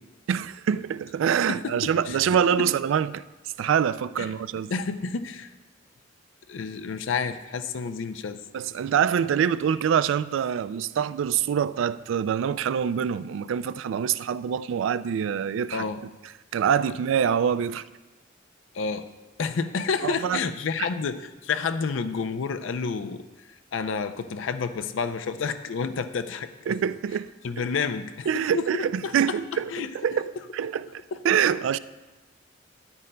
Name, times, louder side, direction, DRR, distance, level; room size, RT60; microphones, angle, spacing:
voice 1, 0.3-3.2 3.6-4.7 8.5-15.9 16.5-17.8 20.0-20.4 26.7-27.3 28.3-31.8, right 8 dB, 85° right, 0.3 m, -25 dB
voice 2, 1.5-2.2 2.6-2.7 4.2-4.3 4.7-5.5 6.5-8.4 15.7-16.0 18.7-19.0 19.4-23.2 23.7-26.5 27.4-29.1 29.5-29.9, left 5 dB, 80° left, 0.5 m, -30 dB
13.0 x 9.8 x 2.2 m
head